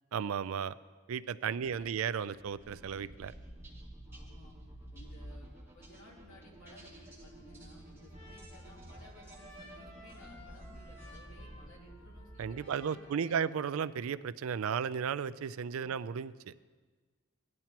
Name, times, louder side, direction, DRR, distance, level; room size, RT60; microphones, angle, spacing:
voice 1, 0.1-0.7 1.1-3.3 12.4-16.5, right 7 dB, 85° right, 16 dB, 0.4 m, -34 dB
voice 2, 1.5-1.9 4.1-4.5 4.9-13.4, left 1 dB, 75° left, -3 dB, 2.8 m, -58 dB
sound 1, 2.6-12.8, right 1 dB, 10° right, 2.1 m, -51 dB
sound 2, 3.8-4.1 4.5-4.9 5.2-5.6 5.9-6.3 6.7-7.1 7.4-7.8 8.1-8.5 8.9-9.2 9.6-10.0, equal, 35° right, 1.2 m, -63 dB
Trumpet, 7.3-14.0, left 2 dB, 35° left, 4.4 m, -58 dB
18.0 x 10.5 x 2.9 m, 1.4 s
head